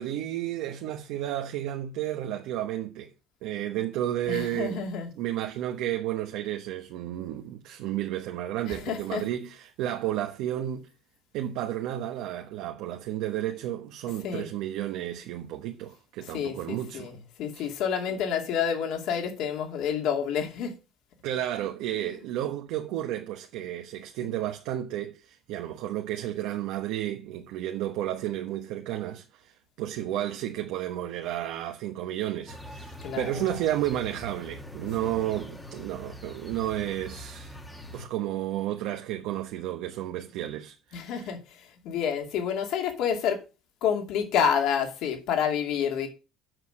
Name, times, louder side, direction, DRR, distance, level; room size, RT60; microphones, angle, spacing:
voice 1, 0.0-3.1 3.4-4.8 5.2-10.9 11.3-17.1 17.5-17.7 21.2-37.6 37.9-41.3, right 12 dB, 70° right, 1.1 m, -32 dB
voice 2, 4.3-5.1 8.7-9.2 14.2-14.5 16.3-20.8 33.0-33.4 35.0-35.1 40.9-43.4 43.8-46.1, left 7 dB, 60° left, 2.6 m, -29 dB
sound 1, 32.5-38.1, left 1 dB, 5° left, 1.3 m, -43 dB
7.9 x 6.4 x 6.4 m
cardioid pair, 160°, 0 cm